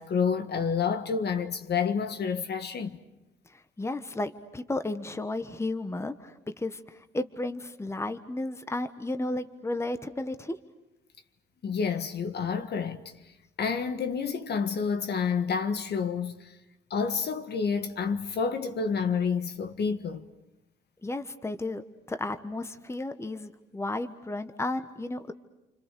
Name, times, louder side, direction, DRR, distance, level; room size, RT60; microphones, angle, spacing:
voice 1, 0.0-3.0 11.6-13.0 13.6-16.5 16.9-20.2, left 6 dB, 55° left, 1.6 m, -29 dB
voice 2, 3.5-10.6 21.0-21.8 22.1-25.3, left 2 dB, 15° left, 1.3 m, -33 dB
29.5 x 25.5 x 6.8 m
cardioid pair, 90°, 20 cm